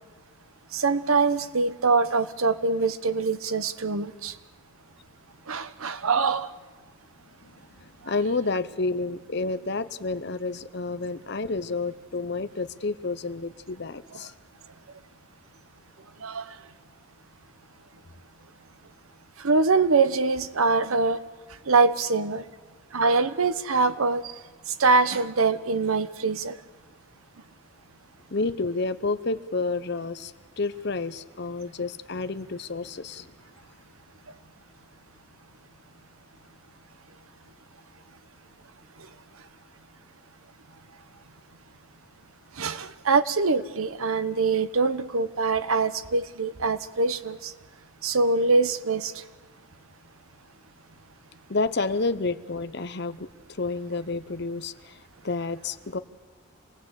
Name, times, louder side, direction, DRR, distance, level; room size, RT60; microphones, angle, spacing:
voice 1, 0.7-4.4 5.5-6.5 8.0-8.1 16.2-16.6 19.4-21.2 21.6-22.4 22.9-24.4 24.7-26.6 39.0-39.1 42.5-47.5 48.0-49.2, right 4 dB, 85° right, 1.0 m, -24 dB
voice 2, 7.4-14.3 28.3-33.3 51.5-55.0 55.2-56.0, left 3 dB, 50° left, 0.8 m, -30 dB
26.5 x 18.5 x 8.2 m
head